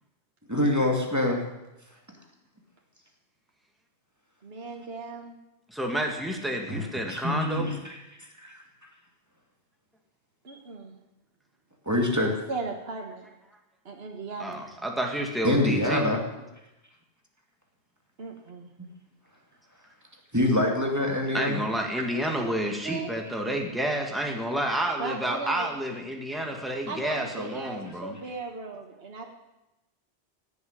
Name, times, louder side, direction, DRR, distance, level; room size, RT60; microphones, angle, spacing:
voice 1, 0.5-1.4 6.7-6.8 7.1-8.0 8.4-8.6 11.9-12.4 15.4-16.2 20.3-21.6, left 1 dB, 15° right, 1 dB, 2.4 m, -25 dB
voice 2, 4.4-5.3 10.4-11.0 12.5-13.3 13.8-14.6 18.2-18.7 22.8-23.1 25.0-25.7 26.9-29.3, right 4 dB, 65° right, 2 dB, 1.8 m, -37 dB
voice 3, 5.7-7.7 14.4-16.1 21.3-28.1, right 1 dB, ahead, 1 dB, 2.1 m, -30 dB
16.5 x 7.2 x 9.8 m, 0.96 s
omnidirectional pair, 1.1 m